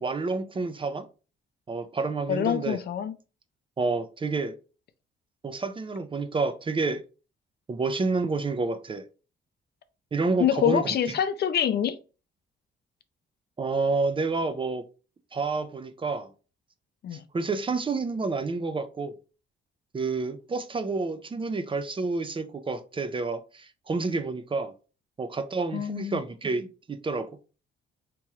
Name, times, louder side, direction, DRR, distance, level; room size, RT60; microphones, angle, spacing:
voice 1, 0.0-1.1 1.7-2.8 3.8-4.5 5.4-7.0 7.7-9.0 10.1-11.2 13.6-14.8 15.3-16.3 17.1-19.1 19.9-24.7 25.2-27.3, right 3 dB, 25° right, 0.5 m, -29 dB
voice 2, 2.3-3.1 10.4-12.0 17.0-17.2 25.7-26.2, left 9 dB, 55° left, 0.5 m, -25 dB
3.5 x 3.0 x 3.1 m
cardioid pair, 90°, 20 cm